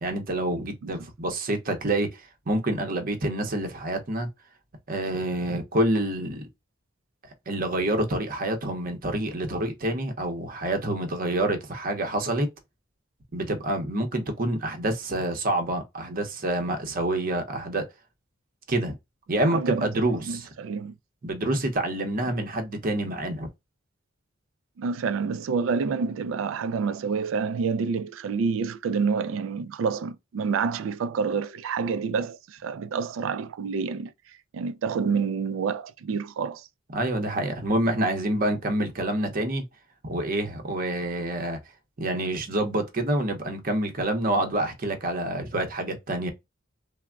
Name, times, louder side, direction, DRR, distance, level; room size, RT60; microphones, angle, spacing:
voice 1, 0.0-4.3 4.9-6.4 7.5-12.5 13.3-17.8 18.7-18.9 19.3-20.5 21.2-23.5 36.9-39.6 40.0-41.6 42.0-46.3, right 1 dB, 45° right, 0.7 m, -27 dB
voice 2, 19.5-21.0 24.8-34.1 34.5-36.7, right 5 dB, 85° right, 0.3 m, -28 dB
3.3 x 2.0 x 2.3 m
head